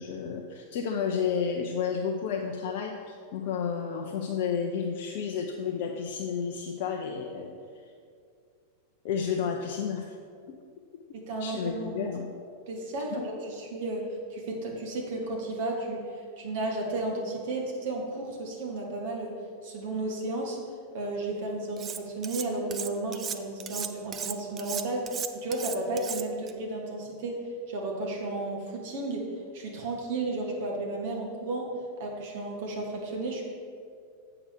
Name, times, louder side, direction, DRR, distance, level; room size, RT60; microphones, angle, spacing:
voice 1, 0.0-7.5 9.0-10.2 11.4-12.3 13.1-13.2, left 6 dB, 50° left, 2 dB, 0.6 m, -31 dB
voice 2, 11.1-12.1 12.7-20.6 20.9-27.4 27.7-29.3 29.5-31.7 32.0-33.4, right 2 dB, 50° right, 0 dB, 1.6 m, -33 dB
Cutlery silverware, 21.8-22.4 22.7-26.5, right 8 dB, 25° right, 0.4 m, -35 dB
7.9 x 4.9 x 6.4 m, 2.3 s
figure-of-eight pair, 90°, 0 cm